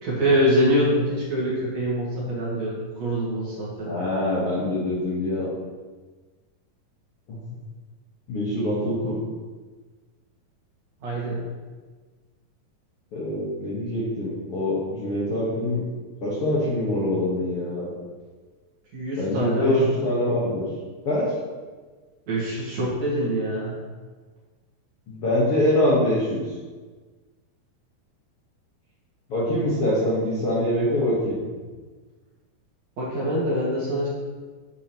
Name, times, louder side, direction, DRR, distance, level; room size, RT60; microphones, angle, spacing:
voice 1, 0.0-4.0 11.0-11.4 18.9-20.0 22.3-23.7 33.0-34.1, equal, 55° right, -6 dB, 2.8 m, -24 dB
voice 2, 3.8-5.5 7.3-7.4 8.3-9.2 13.1-15.8 16.2-17.9 19.2-20.6 21.0-21.3 25.1-26.4 29.3-31.4, left 1 dB, 55° left, -7 dB, 1.9 m, -24 dB
8.9 x 7.1 x 3.0 m, 1.4 s
omnidirectional pair, 4.1 m